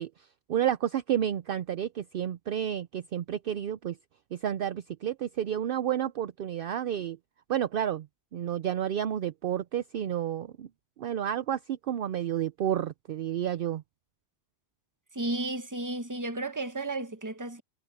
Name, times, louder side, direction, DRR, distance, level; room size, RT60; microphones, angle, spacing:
voice 1, 0.0-4.0 4.3-7.2 7.5-8.1 8.3-10.7 11.0-13.8, right 10 dB, 60° right, 0.7 m, -30 dB
voice 2, 15.1-17.6, right 2 dB, 15° right, 1.1 m, -33 dB
omnidirectional pair, 1.1 m